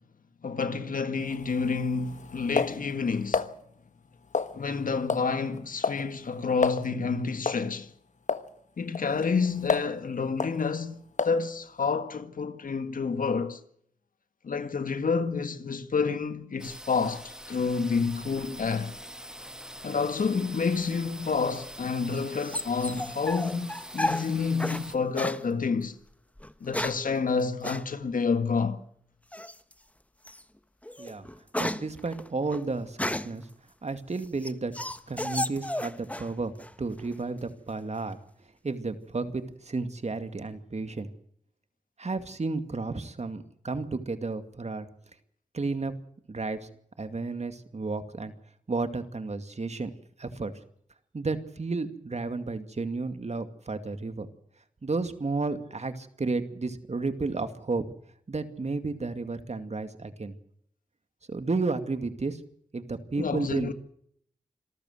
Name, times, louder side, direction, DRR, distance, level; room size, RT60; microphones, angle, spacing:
voice 1, 0.4-3.5 4.5-7.9 8.8-13.6 14.4-19.0 19.8-26.0 26.6-28.8 63.2-63.7, left 5 dB, 80° left, 1.8 m, -29 dB
sound 1, 1.2-3.5 4.3-4.8 5.1-5.3 5.6-6.1 6.3-6.4 6.6-6.9 7.5-7.7 8.3-8.5 9.0-10.0 10.4-10.6 11.2-11.5, left 5 dB, 60° left, 1.4 m, -30 dB
sound 2, 16.6-25.0, equal, 5° right, 1.6 m, -44 dB
sound 3, 21.6-24.8 25.1-25.4 26.4-27.1 27.6-27.8 29.3-29.7 30.2-30.4 30.8-33.4 34.0-36.3 36.6-37.2, left 1 dB, 10° left, 1.2 m, -33 dB
voice 2, 31.6-33.5 33.8-34.7 35.1-36.5 36.8-38.2 38.6-41.1 42.0-44.9 45.5-45.9 46.3-46.7 47.0-48.3 48.7-49.9 50.2-50.5 51.1-54.3 54.8-57.8 58.3-60.4 61.3-62.4 62.7-63.7, right 3 dB, 55° right, 2.4 m, -32 dB
26.5 x 14.0 x 8.1 m
cardioid pair, 45°, 14 cm